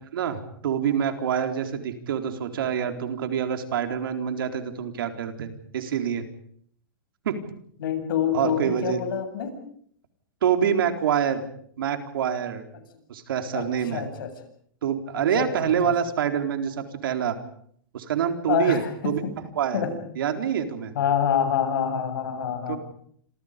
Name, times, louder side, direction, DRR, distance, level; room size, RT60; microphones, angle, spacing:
voice 1, 0.1-6.2 7.2-7.4 8.3-9.0 10.4-11.4 11.8-12.6 13.1-14.0 14.8-17.4 17.9-19.2 19.6-19.8 20.2-20.9 22.7-22.8, right 8 dB, 75° right, 6 dB, 4.1 m, -26 dB
voice 2, 7.8-9.5 13.5-13.7 13.9-14.3 15.1-15.9 18.5-19.3 19.7-19.9 20.9-22.8, left 8 dB, 75° left, 7 dB, 7.8 m, -26 dB
29.5 x 27.0 x 5.3 m, 0.62 s
supercardioid pair, 155°, 12 cm